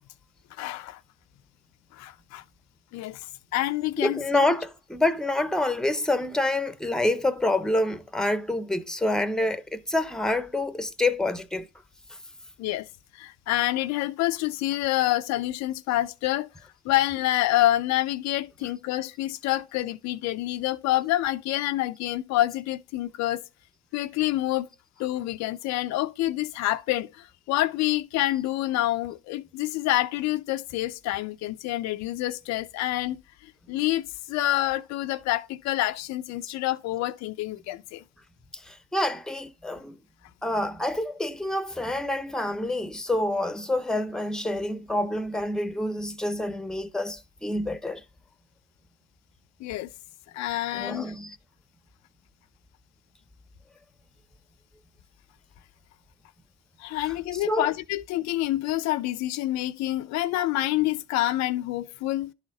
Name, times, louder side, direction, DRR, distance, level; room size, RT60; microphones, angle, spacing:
voice 1, 0.6-1.0 1.9-2.4 2.9-4.4 12.6-12.9 13.1-16.5 16.8-23.4 23.9-24.7 25.0-33.2 33.4-38.0 49.6-49.9 50.3-51.1 56.8-62.3, left 15 dB, 60° left, 0.5 m, -27 dB
voice 2, 4.0-11.7 18.6-18.7 38.6-40.0 40.4-48.0 50.7-51.4 56.9-57.8, left 1 dB, ahead, 0.8 m, -27 dB
11.0 x 4.2 x 3.8 m
hypercardioid pair, 65°, 31 cm